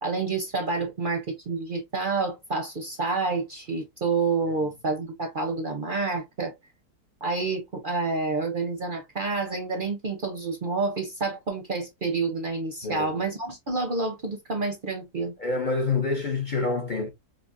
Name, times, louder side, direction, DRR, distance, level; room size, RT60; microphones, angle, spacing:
voice 1, 0.0-6.5 7.2-15.3, right 3 dB, 45° right, 0.7 m, -28 dB
voice 2, 15.4-17.1, left 3 dB, 45° left, 0.6 m, -27 dB
5.0 x 2.1 x 2.5 m
omnidirectional pair, 1.7 m